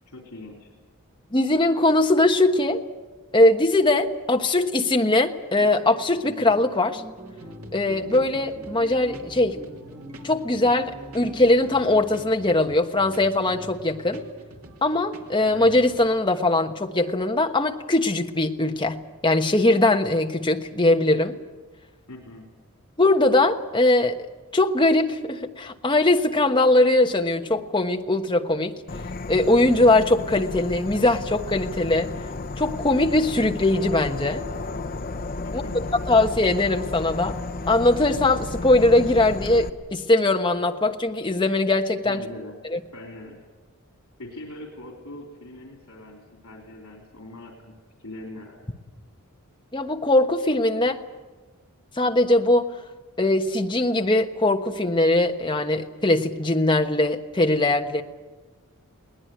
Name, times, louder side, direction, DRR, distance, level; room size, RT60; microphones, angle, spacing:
voice 1, 0.1-0.7 22.1-22.4 35.4-35.8 42.0-42.6 42.9-43.4 44.2-48.6, left 1 dB, 80° left, 1 dB, 3.5 m, -42 dB
voice 2, 1.3-2.8 3.3-7.0 7.7-9.6 10.2-14.2 14.8-21.4 23.0-24.2 24.5-28.7 29.3-32.1 32.6-34.4 35.5-35.6 36.1-37.4 37.7-42.2 42.7-42.8 49.7-51.0 52.0-52.7 53.2-58.0, left 2 dB, 20° left, 4 dB, 1.3 m, -21 dB
sound 1, 5.5-12.6, equal, 15° right, 1.5 m, -44 dB
sound 2, 7.2-16.1, right 1 dB, 75° right, 2.7 m, -45 dB
Insect / Frog, 28.9-39.7, left 2 dB, 40° left, 0.9 m, -33 dB
21.5 x 18.5 x 9.4 m, 1.3 s
head